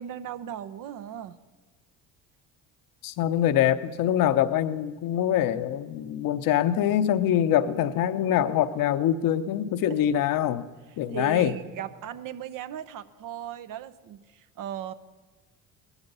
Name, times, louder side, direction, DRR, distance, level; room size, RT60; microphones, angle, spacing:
voice 1, 0.0-1.4 9.9-10.0 10.9-14.9, right 10 dB, 60° right, 12 dB, 0.8 m, -37 dB
voice 2, 3.0-10.7 11.0-11.5, left 10 dB, 60° left, 11 dB, 0.9 m, -24 dB
18.5 x 12.0 x 5.5 m, 1.3 s
supercardioid pair, 70°, 37 cm